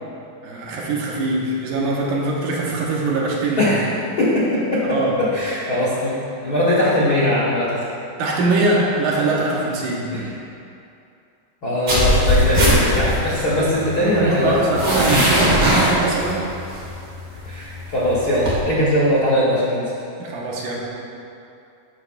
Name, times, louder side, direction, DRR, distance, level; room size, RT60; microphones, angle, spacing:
voice 1, 0.4-3.7 4.9-5.2 8.2-10.1 14.1-16.4 20.2-20.8, right 2 dB, 80° right, -4 dB, 2.6 m, -22 dB
voice 2, 5.3-6.2 6.4-7.8 10.1-10.2 11.6-14.5 17.4-19.8, left 1 dB, 85° left, -9 dB, 0.8 m, -20 dB
sound 1, 11.9-18.6, equal, 45° right, 1.7 m, -20 dB
9.9 x 6.5 x 2.4 m, 2.6 s
omnidirectional pair, 3.7 m